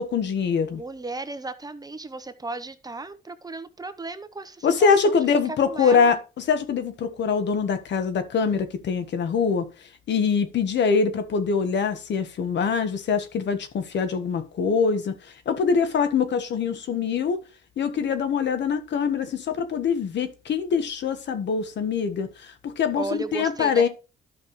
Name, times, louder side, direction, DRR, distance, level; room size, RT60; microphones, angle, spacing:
voice 1, 0.0-0.8 4.6-6.2 6.5-9.7 10.1-15.1 15.4-17.4 17.8-23.9, left 6 dB, 65° left, 1.4 m, -23 dB
voice 2, 0.7-5.2 5.5-6.2 23.0-23.9, right 3 dB, 20° right, 0.9 m, -35 dB
12.0 x 5.8 x 3.2 m
cardioid pair, 90°, 20 cm